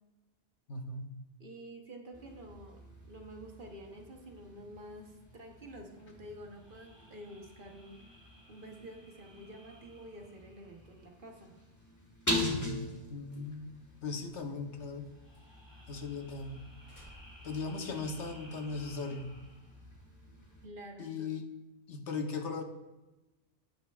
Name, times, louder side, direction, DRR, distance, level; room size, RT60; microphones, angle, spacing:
voice 1, 0.7-1.1 12.4-12.8 13.1-13.7 14.0-15.1 15.9-16.6 17.4-19.3 21.0-21.4 21.9-22.6, left 4 dB, 80° left, 6 dB, 1.2 m, -38 dB
voice 2, 1.4-8.2 8.5-11.5 20.6-21.3, right 1 dB, 50° right, 3 dB, 1.1 m, -49 dB
sound 1, 2.1-20.7, left 1 dB, 15° left, 1.3 m, -43 dB
sound 2, 6.5-11.3 15.1-19.8, equal, 20° right, 1.6 m, -59 dB
sound 3, 13.1-18.2, right 1 dB, 40° left, 2.1 m, -63 dB
16.5 x 5.7 x 2.3 m, 1.0 s
omnidirectional pair, 1.2 m